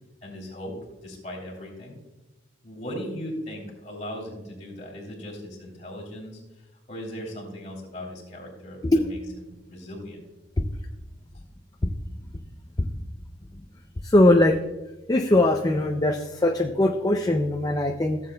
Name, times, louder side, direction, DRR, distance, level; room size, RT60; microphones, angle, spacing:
voice 1, 0.2-0.7 1.0-2.0 2.6-6.4 6.9-10.2, equal, 35° left, -2 dB, 2.9 m, -38 dB
voice 2, 14.0-14.6 15.1-18.2, left 1 dB, 20° left, 4 dB, 0.4 m, -20 dB
15.5 x 7.5 x 2.2 m, 1.1 s
head